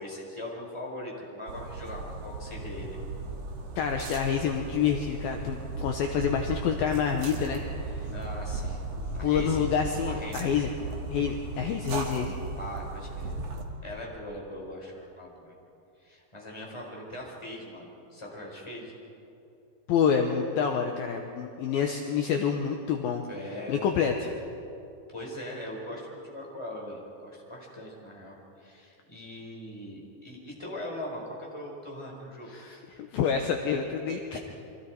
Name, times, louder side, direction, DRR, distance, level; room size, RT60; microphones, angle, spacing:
voice 1, 0.0-3.0 8.1-8.8 9.1-9.7 10.0-10.5 12.6-13.4 13.8-15.5 16.0-19.0 23.3-23.9 25.1-32.5 34.3-34.4, left 1 dB, 5° left, -2 dB, 4.0 m, -40 dB
sound 1, 1.5-13.6, right 3 dB, 50° right, 2.3 m, -36 dB
voice 2, 3.8-7.6 7.9-8.1 9.2-10.7 11.1-12.3 19.9-23.2 23.7-24.3 32.5-34.4, left 7 dB, 70° left, 4 dB, 2.4 m, -28 dB
29.5 x 24.0 x 4.7 m, 2.7 s
omnidirectional pair, 5.1 m